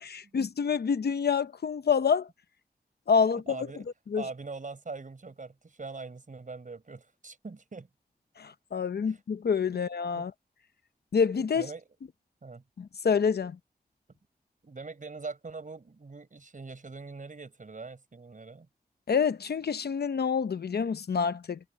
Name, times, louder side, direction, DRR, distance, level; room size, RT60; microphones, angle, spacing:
voice 1, 0.0-2.3 3.1-3.7 4.1-4.2 8.4-10.3 11.1-11.7 12.8-13.6 19.1-21.6, left 6 dB, 85° left, 0.8 m, -27 dB
voice 2, 3.5-3.9 4.1-7.9 9.0-9.2 10.2-10.3 11.5-11.8 12.4-12.6 14.6-18.7, right 4 dB, 55° right, 5.5 m, -42 dB
wide cardioid pair, 80°, 16 cm